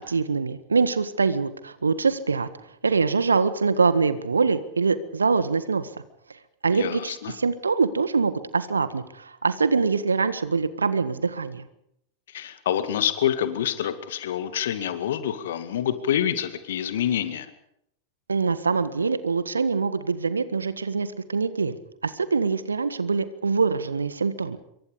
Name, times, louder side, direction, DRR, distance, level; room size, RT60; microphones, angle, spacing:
voice 1, 0.1-2.5 2.8-5.9 6.6-11.6 18.3-21.8 22.0-24.6, right 4 dB, 75° right, 14 dB, 1.6 m, -24 dB
voice 2, 6.7-7.3 12.3-17.5, left 10 dB, 60° left, 11 dB, 2.1 m, -27 dB
26.5 x 23.5 x 5.3 m, 0.74 s
figure-of-eight pair, 90°, 0 cm